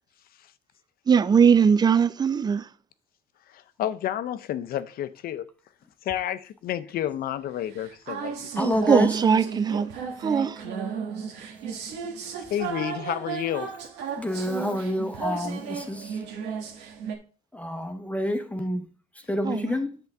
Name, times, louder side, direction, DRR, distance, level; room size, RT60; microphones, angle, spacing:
voice 1, 1.1-2.7 8.6-9.9 10.2-10.6 19.4-19.7, right 6 dB, 25° right, 0.5 m, -20 dB
voice 2, 3.5-5.4 6.0-8.5 12.4-13.7, left 11 dB, 65° left, 0.7 m, -30 dB
sound 1, 7.7-17.1, right 7 dB, 85° right, 1.7 m, -34 dB
voice 3, 8.6-9.2 14.2-16.2 17.5-18.9 19.1-20.0, left 1 dB, 10° left, 0.9 m, -28 dB
8.1 x 6.9 x 3.5 m
cardioid pair, 110°, 17 cm